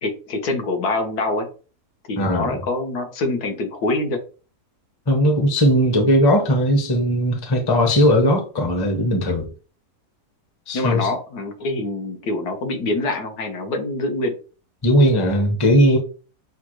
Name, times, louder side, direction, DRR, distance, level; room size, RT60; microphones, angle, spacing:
voice 1, 0.0-1.5 2.1-4.2 9.3-9.4 10.7-14.3, left 2 dB, 75° left, 1.5 m, -25 dB
voice 2, 2.2-2.6 5.1-9.5 10.7-11.1 14.8-16.0, equal, 20° left, 0.6 m, -18 dB
6.3 x 2.3 x 3.1 m
omnidirectional pair, 1.7 m